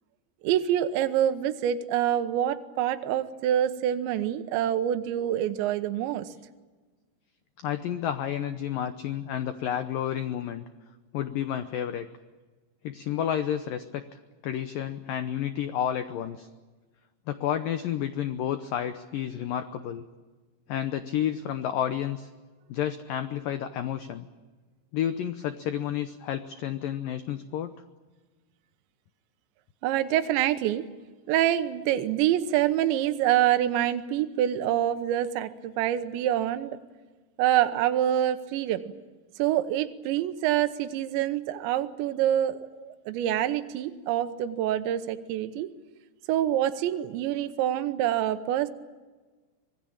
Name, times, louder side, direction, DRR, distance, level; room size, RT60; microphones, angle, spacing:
voice 1, 0.4-6.3 29.8-30.9 31.3-36.8 37.4-38.8 39.4-45.7 46.3-48.7, right 11 dB, 80° right, 9 dB, 3.3 m, -26 dB
voice 2, 7.6-10.6 11.1-12.1 12.8-16.5 17.3-20.1 20.7-22.3 22.7-24.3 24.9-27.7, left 10 dB, 90° left, 10 dB, 1.9 m, -31 dB
25.5 x 21.0 x 8.8 m, 1.3 s
omnidirectional pair, 5.3 m